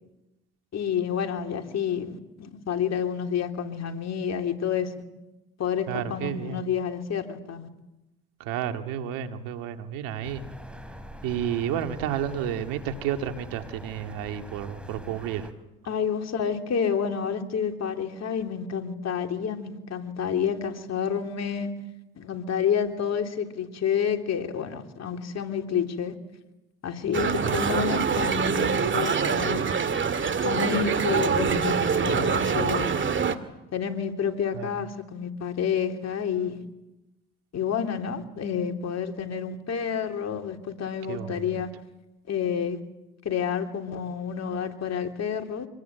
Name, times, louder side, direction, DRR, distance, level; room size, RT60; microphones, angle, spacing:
voice 1, 0.7-4.9 5.6-7.7 15.9-21.7 22.1-26.1 26.8-29.6 30.4-32.9 33.7-36.5 37.5-41.7 42.3-42.8 43.2-45.7, left 7 dB, 50° left, 5 dB, 3.4 m, -29 dB
voice 2, 5.9-6.6 8.4-10.4 11.2-15.5 27.4-27.6 34.5-34.7 41.1-41.6, right 9 dB, 85° right, 7 dB, 2.1 m, -31 dB
sound 1, 10.2-15.5, right 1 dB, 5° right, 4.0 m, -43 dB
sound 2, 27.1-33.4, right 6 dB, 35° right, 2.2 m, -25 dB
26.0 x 20.5 x 9.2 m, 0.97 s
supercardioid pair, 75°, 33 cm